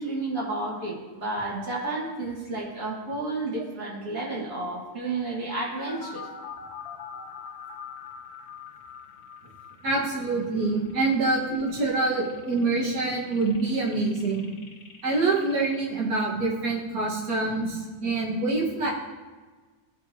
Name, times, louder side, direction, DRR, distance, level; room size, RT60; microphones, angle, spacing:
voice 1, 0.0-6.3, right 2 dB, 60° right, -6 dB, 2.2 m, -31 dB
sound 1, 5.9-15.9, left 6 dB, 50° left, 0.9 m, -44 dB
voice 2, 9.8-14.5 15.0-18.9, right 3 dB, 75° right, -4 dB, 2.1 m, -26 dB
14.0 x 4.9 x 2.8 m, 1.4 s
omnidirectional pair, 1.7 m